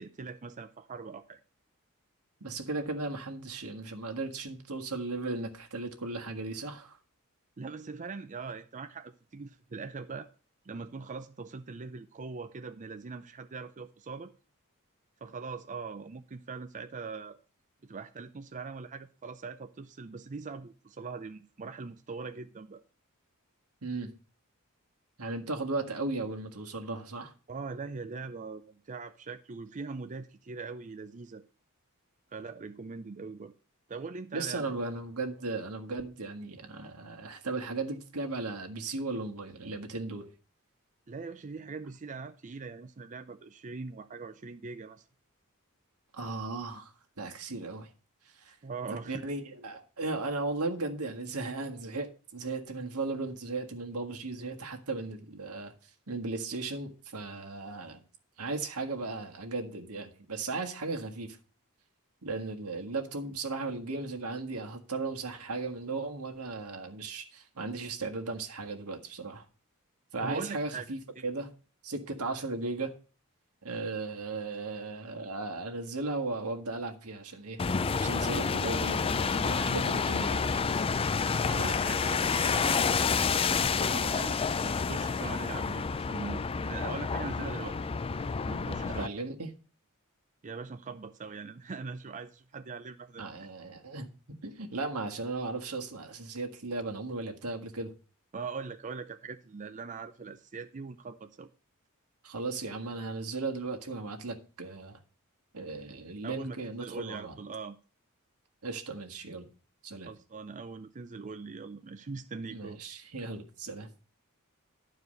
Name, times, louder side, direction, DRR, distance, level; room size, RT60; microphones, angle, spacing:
voice 1, 0.0-1.4 7.6-10.3 10.6-14.3 15.2-17.4 17.8-22.8 27.5-31.4 32.3-33.5 33.9-34.7 41.1-45.0 48.6-49.2 70.2-70.8 71.2-71.3 81.5-87.9 88.5-89.1 90.4-93.5 98.3-101.5 106.2-107.8 110.0-112.8, right 4 dB, 35° right, 0.5 m, -41 dB
voice 2, 2.4-7.0 23.8-24.1 25.2-27.3 34.3-40.3 46.1-47.9 48.4-48.6 49.0-55.7 56.1-58.0 58.4-61.4 62.2-69.4 70.1-71.5 71.8-72.9 73.6-80.5 89.0-89.5 93.2-94.1 94.4-97.9 102.2-105.0 105.5-107.4 108.6-109.4 109.8-110.1 112.5-113.9, right 3 dB, 80° right, 1.7 m, -36 dB
sound 1, 77.6-89.1, left 5 dB, 25° left, 0.4 m, -29 dB
11.5 x 4.8 x 6.4 m
head